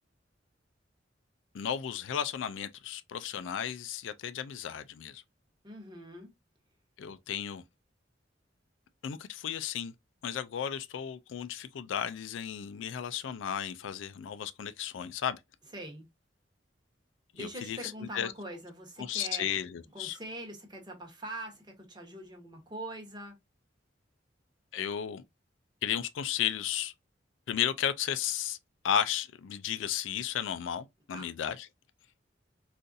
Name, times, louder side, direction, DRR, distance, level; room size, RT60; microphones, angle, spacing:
voice 1, 1.5-5.2 7.0-7.6 9.0-9.9 10.2-15.4 17.3-17.8 18.1-18.3 19.1-20.2 24.7-25.2 25.8-26.9 27.5-28.6 28.8-31.7, left 9 dB, 85° left, 0.4 m, -34 dB
voice 2, 5.6-6.3 15.6-16.1 17.3-19.5 19.9-23.3 31.1-31.3, right 1 dB, 25° right, 1.1 m, -43 dB
3.8 x 2.5 x 2.5 m
head